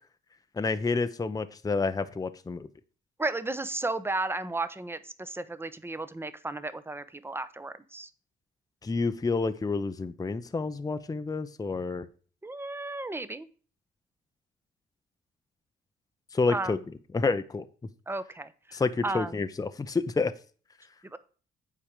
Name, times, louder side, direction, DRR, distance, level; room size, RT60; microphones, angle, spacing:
voice 1, 0.6-2.7 8.8-12.1 16.3-16.8 17.1-17.7 18.7-20.3, left 4 dB, 20° left, 10 dB, 0.7 m, -29 dB
voice 2, 3.2-8.1 12.4-13.5 16.5-16.7 18.1-19.4 21.0-21.2, right 2 dB, 10° right, 14 dB, 0.9 m, -34 dB
8.8 x 4.9 x 6.5 m, 0.40 s
cardioid pair, 90°, 20 cm